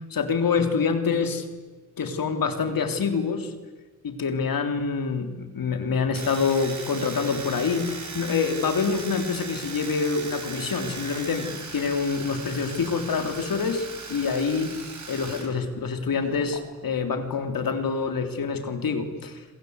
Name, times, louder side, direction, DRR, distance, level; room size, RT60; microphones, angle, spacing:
voice 1, 0.1-1.4 2.0-3.5 4.0-14.7 15.1-19.4, left 5 dB, 80° left, 6 dB, 3.4 m, -26 dB
Domestic sounds home sounds, 6.1-15.5 15.7-16.6, right 4 dB, 60° right, 5.4 m, -38 dB
27.0 x 27.0 x 8.2 m, 1.3 s
cardioid pair, 85°, 34 cm